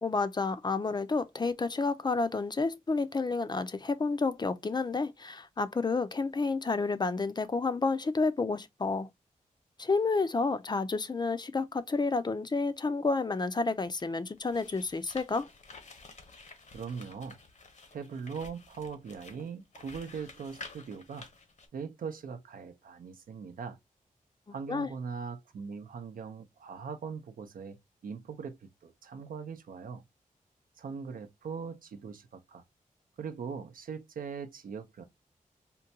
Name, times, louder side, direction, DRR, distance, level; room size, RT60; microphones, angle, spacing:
voice 1, 0.0-9.1 9.8-15.5 24.7-24.9, left 3 dB, 30° left, 0.4 m, -30 dB
sound 1, 13.9-21.7, left 3 dB, 55° left, 0.8 m, -51 dB
voice 2, 16.7-17.4 17.9-21.3 21.7-23.8 24.5-27.8 28.0-30.0 30.8-32.6 33.2-35.0, right 6 dB, 75° right, 0.6 m, -40 dB
3.7 x 2.2 x 2.7 m
cardioid pair, 55°, 14 cm